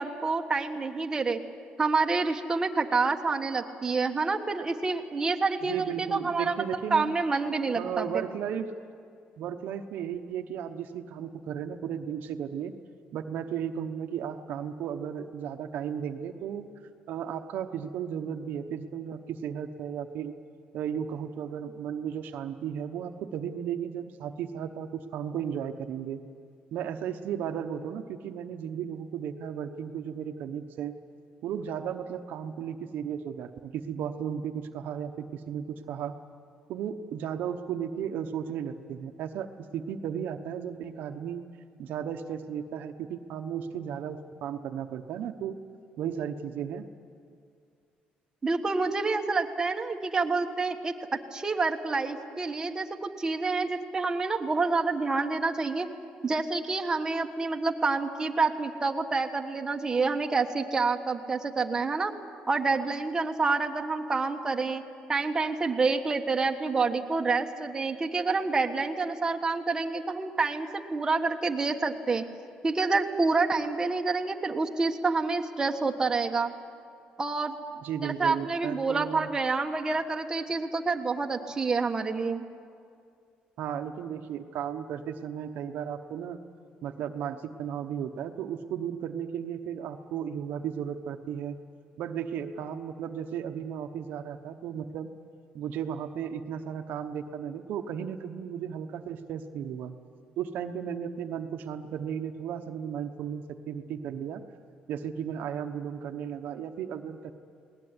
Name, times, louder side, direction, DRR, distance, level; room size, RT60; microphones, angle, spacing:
voice 1, 0.0-1.4 1.8-8.2 48.4-51.0 51.3-55.9 56.2-62.1 62.5-64.8 65.1-72.2 72.6-76.5 77.2-77.6 78.0-82.4, right 4 dB, 20° right, 3 dB, 1.4 m, -28 dB
voice 2, 5.6-7.2 7.7-8.7 9.4-12.7 13.1-16.7 17.1-20.3 20.7-26.2 26.7-31.0 31.4-36.1 36.7-39.5 39.7-41.5 41.8-45.6 46.0-46.8 77.8-79.3 83.6-86.4 86.8-91.6 92.0-95.1 95.5-99.9 100.4-104.4 104.9-107.3, right 8 dB, 75° right, 7 dB, 1.0 m, -35 dB
20.5 x 19.0 x 9.7 m, 2.3 s
cardioid pair, 125°, 3 cm